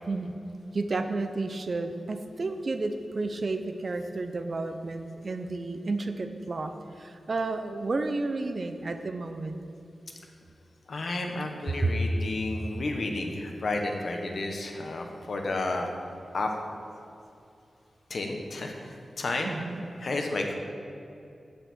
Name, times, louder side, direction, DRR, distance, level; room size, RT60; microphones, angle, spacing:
voice 1, 0.7-9.6 11.8-11.9 19.4-19.8, right 3 dB, 45° right, 7 dB, 0.8 m, -31 dB
voice 2, 10.9-15.9 16.3-16.5 18.1-19.5 20.0-20.5, left 2 dB, 60° left, 2 dB, 1.3 m, -31 dB
8.6 x 6.9 x 7.6 m, 2.7 s
wide cardioid pair, 105°, 0 cm